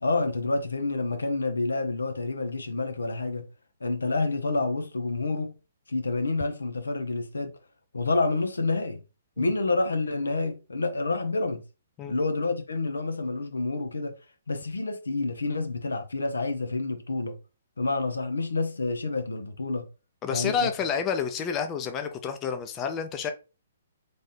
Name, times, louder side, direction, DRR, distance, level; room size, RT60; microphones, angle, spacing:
voice 1, 0.0-3.5 3.8-5.5 5.9-7.5 7.9-9.0 9.4-11.6 12.1-14.1 14.5-17.4 17.8-19.9 20.3-20.7, left 3 dB, 85° left, 0.8 m, -28 dB
voice 2, 20.2-23.3, left 6 dB, 25° left, 0.6 m, -29 dB
3.4 x 2.7 x 4.1 m
hypercardioid pair, 130°, 0 cm